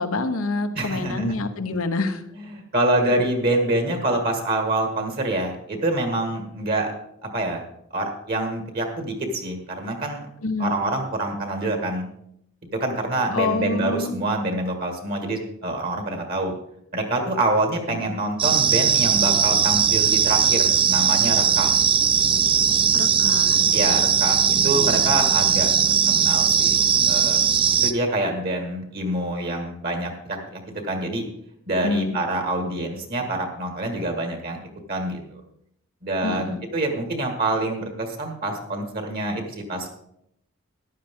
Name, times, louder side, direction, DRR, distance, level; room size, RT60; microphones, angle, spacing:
voice 1, 0.0-2.2 10.4-10.8 13.3-14.2 17.9-18.1 22.9-23.6 24.5-25.0 31.8-32.2 36.2-36.6, left 3 dB, 90° left, 8 dB, 1.1 m, -27 dB
voice 2, 0.7-1.4 2.3-6.9 7.2-7.6 7.9-10.3 10.6-12.0 12.8-16.5 16.9-21.8 23.7-25.7 26.1-26.8 27.1-27.4 27.8-31.3 31.7-34.6 34.9-35.4 36.0-39.9, right 1 dB, 45° right, 4 dB, 1.8 m, -26 dB
sound 1, 18.4-27.9, right 7 dB, 25° right, 0.5 m, -19 dB
14.5 x 10.5 x 3.7 m, 0.74 s
head